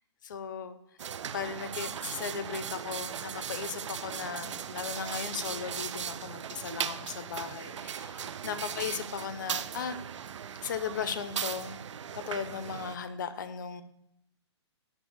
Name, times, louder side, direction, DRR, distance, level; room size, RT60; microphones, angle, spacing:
voice 1, 0.2-0.8 1.3-10.0 10.6-11.8 12.1-13.8, left 7 dB, 40° left, 12 dB, 0.5 m, -37 dB
sound 1, 1.0-13.0, right 8 dB, 90° right, 0.4 m, -38 dB
7.2 x 3.4 x 5.9 m, 0.82 s
hypercardioid pair, 165°, 15 cm